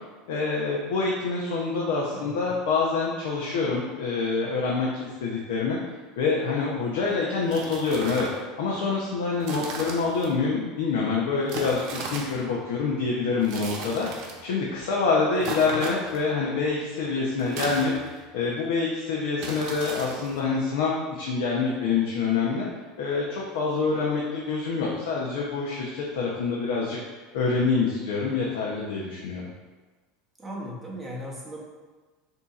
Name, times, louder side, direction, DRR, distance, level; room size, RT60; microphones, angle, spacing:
voice 1, 0.3-5.8 6.2-17.9 18.3-22.7 23.0-27.0 27.3-29.5, left 4 dB, 75° left, -3 dB, 0.7 m, -26 dB
voice 2, 2.1-2.5 15.4-15.8 30.4-31.6, equal, 5° right, -5 dB, 0.7 m, -38 dB
sound 1, 7.4-8.4 9.4-10.3 11.5-12.4 13.4-14.4 15.4-16.3 17.4-18.3 19.4-20.4, right 3 dB, 55° right, 0.7 m, -36 dB
6.7 x 2.8 x 2.4 m, 1.3 s
supercardioid pair, 160°, 0 cm